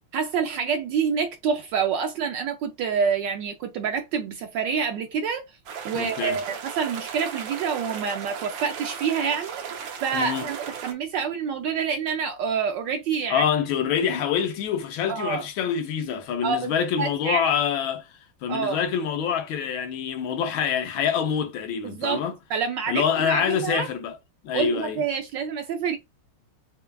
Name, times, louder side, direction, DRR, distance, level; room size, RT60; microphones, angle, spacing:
voice 1, 0.1-5.4 5.8-13.4 15.1-15.4 16.4-16.7 17.0-17.5 18.5-18.8 21.8-22.2 22.5-23.9 24.5-26.0, right 6 dB, 75° right, 1.1 m, -27 dB
sound 1, 5.7-10.9, right 7 dB, 90° right, 1.7 m, -36 dB
voice 2, 5.9-6.4 10.1-10.5 13.3-18.1 18.4-22.4 22.9-24.2 24.4-25.0, left 8 dB, 75° left, 1.4 m, -26 dB
6.6 x 2.3 x 2.2 m
omnidirectional pair, 2.3 m